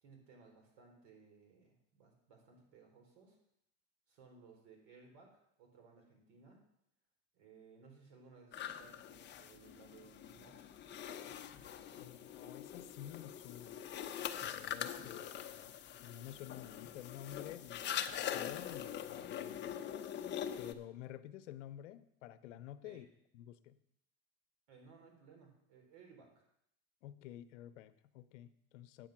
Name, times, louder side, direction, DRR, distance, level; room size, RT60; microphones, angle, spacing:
voice 1, 0.0-3.4 4.1-6.6 7.3-10.8 22.8-23.0 24.7-26.5, right 4 dB, 70° right, 2 dB, 4.0 m, -61 dB
sound 1, 8.5-20.7, left 9 dB, 30° left, 0.8 m, -43 dB
voice 2, 12.0-13.8 14.4-19.9 20.6-23.1 23.3-23.8 27.0-29.1, left 12 dB, 90° left, 12 dB, 0.7 m, -51 dB
9.2 x 7.9 x 5.9 m, 0.74 s
supercardioid pair, 115°, 36 cm